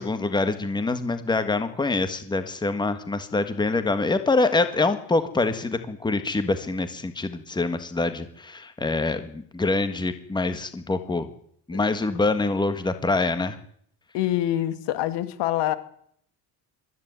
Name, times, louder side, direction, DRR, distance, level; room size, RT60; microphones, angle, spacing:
voice 1, 0.0-11.3 11.7-13.6, left 3 dB, 10° left, 9 dB, 1.7 m, -25 dB
voice 2, 14.1-15.7, left 13 dB, 85° left, 11 dB, 2.4 m, -25 dB
21.5 x 14.0 x 9.7 m, 0.65 s
cardioid pair, 165°, 41 cm